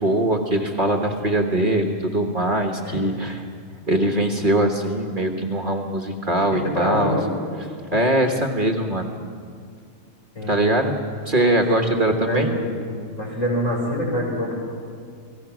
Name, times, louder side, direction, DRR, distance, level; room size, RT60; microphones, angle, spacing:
voice 1, 0.0-3.5 3.9-7.2 7.9-9.1 10.5-11.0 11.2-12.5, right 1 dB, 35° right, 3 dB, 1.4 m, -21 dB
voice 2, 6.5-7.3 10.3-10.7 11.5-12.7 13.2-14.5, equal, 60° left, -2 dB, 5.9 m, -26 dB
28.0 x 18.5 x 6.1 m, 2.2 s
omnidirectional pair, 1.5 m